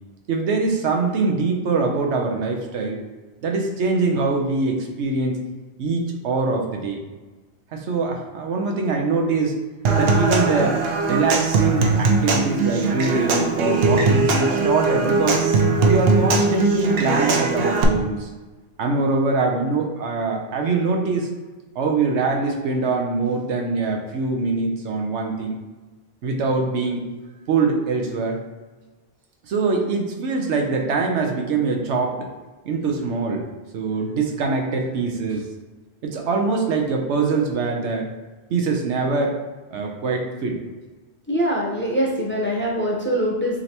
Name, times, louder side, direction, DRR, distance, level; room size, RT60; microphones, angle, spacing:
voice 1, 0.3-3.0 3.4-5.4 5.8-7.0 7.7-9.5 9.9-10.8 11.1-15.4 15.8-18.3 18.8-21.3 21.7-25.6 26.2-27.1 27.5-28.4 29.4-32.3 32.7-33.5 33.7-35.5 36.0-38.1 38.5-39.4 39.7-40.6, right 4 dB, 85° right, 2 dB, 1.0 m, -23 dB
Human voice / Acoustic guitar / Percussion, 9.8-17.8, right 3 dB, 65° right, 0.8 m, -20 dB
voice 2, 41.3-43.6, equal, 10° left, -3 dB, 0.7 m, -23 dB
4.9 x 3.3 x 2.9 m, 1.3 s
omnidirectional pair, 1.1 m